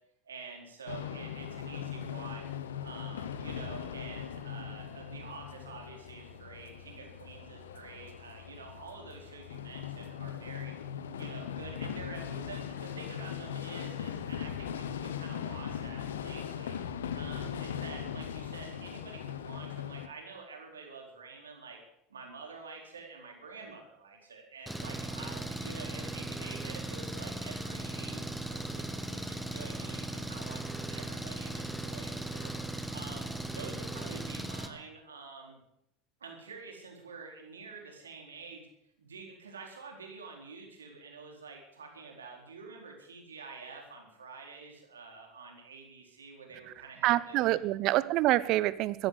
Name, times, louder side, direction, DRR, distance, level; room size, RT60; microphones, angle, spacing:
voice 1, 0.2-2.4 2.8-10.7 11.1-16.8 17.1-21.8 22.1-32.5 32.9-35.6 36.2-38.7 39.0-47.6, right 4 dB, 90° right, 1 dB, 4.1 m, -48 dB
sound 1, 0.9-20.1, left 8 dB, 80° left, 1.1 m, -39 dB
Engine, 24.7-34.7, right 2 dB, ahead, 2.1 m, -38 dB
voice 2, 47.0-49.1, right 16 dB, 55° right, 17 dB, 0.9 m, -26 dB
15.0 x 10.5 x 8.1 m, 0.78 s
hypercardioid pair, 80°, 0 cm